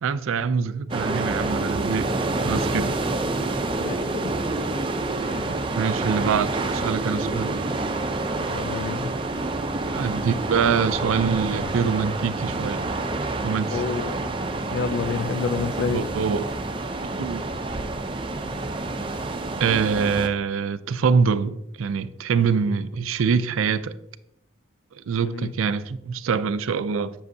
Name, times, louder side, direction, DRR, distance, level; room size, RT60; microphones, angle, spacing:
voice 1, 0.0-2.1 2.4-2.9 5.8-7.6 8.4-8.5 9.9-12.9 13.4-13.8 15.9-16.5 17.1-17.5 19.6-24.0 24.9-27.1, right 6 dB, 85° right, 0.4 m, -24 dB
sound 1, 0.9-20.3, right 2 dB, 25° right, 0.5 m, -28 dB
voice 2, 3.8-4.4 5.2-5.5 8.5-9.1 13.7-14.2 14.7-16.0 25.2-25.5, left 5 dB, 75° left, 0.4 m, -29 dB
7.6 x 6.9 x 2.7 m
head